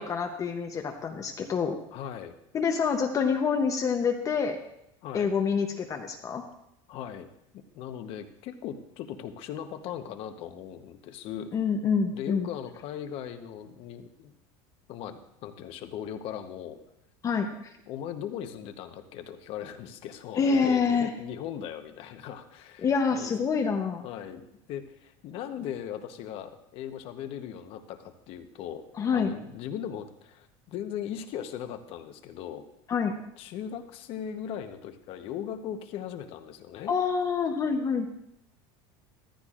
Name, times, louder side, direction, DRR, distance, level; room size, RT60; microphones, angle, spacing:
voice 1, 0.0-1.8 2.5-4.6 5.1-6.4 11.5-12.5 17.2-17.7 20.4-21.1 22.8-24.1 28.9-29.3 32.9-33.1 36.9-38.1, left 5 dB, 30° left, 4 dB, 0.8 m, -27 dB
voice 2, 1.9-2.3 5.0-5.3 6.9-7.3 7.5-11.5 12.1-14.3 14.9-16.8 17.9-23.3 24.0-28.8 29.1-32.7 33.4-36.9, left 9 dB, 50° left, 8 dB, 1.0 m, -39 dB
14.0 x 13.5 x 2.5 m, 0.79 s
cardioid pair, 140°, 12 cm